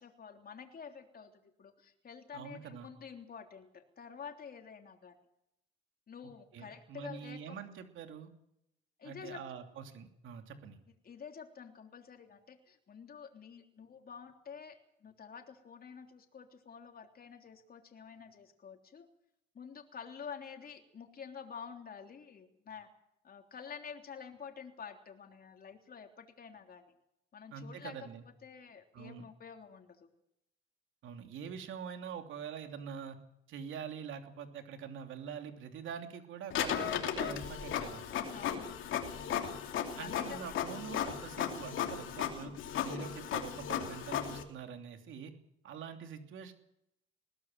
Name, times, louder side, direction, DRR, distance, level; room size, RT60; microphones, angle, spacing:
voice 1, 0.0-5.2 6.1-7.4 9.0-9.4 11.0-19.1 19.5-22.9 23.2-26.9 27.3-28.1 28.4-30.1 38.3-38.7 40.0-40.6, left 6 dB, 50° left, 4 dB, 3.4 m, -49 dB
voice 2, 2.3-2.9 6.5-8.3 9.0-10.8 27.5-28.2 28.9-29.3 31.0-33.2 33.5-38.0 40.0-42.6 42.8-45.3 45.6-46.5, right 7 dB, 80° right, 6 dB, 2.9 m, -45 dB
Printer, 36.5-44.4, left 9 dB, 80° left, 2.9 m, -36 dB
21.0 x 17.0 x 7.7 m, 0.80 s
cardioid pair, 90°, 20 cm